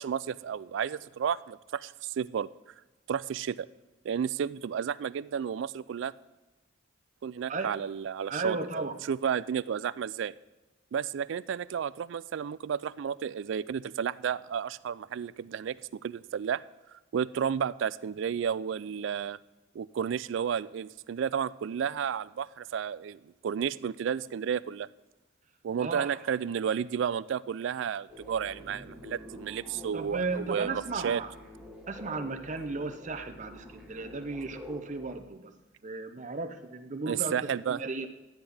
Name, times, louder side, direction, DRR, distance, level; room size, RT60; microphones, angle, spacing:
voice 1, 0.0-2.5 3.1-3.7 4.0-6.1 7.2-10.3 10.9-15.8 16.0-16.6 17.1-19.4 19.7-24.9 25.6-31.2 37.1-37.8, right 7 dB, 65° right, 19 dB, 0.3 m, -32 dB
voice 2, 8.3-9.0 25.8-26.2 29.9-31.3 31.9-35.5 35.8-38.1, right 3 dB, 35° right, 6 dB, 0.7 m, -35 dB
sound 1, 28.1-35.2, left 1 dB, 5° right, 1.1 m, -48 dB
11.5 x 9.8 x 3.5 m, 1.1 s
head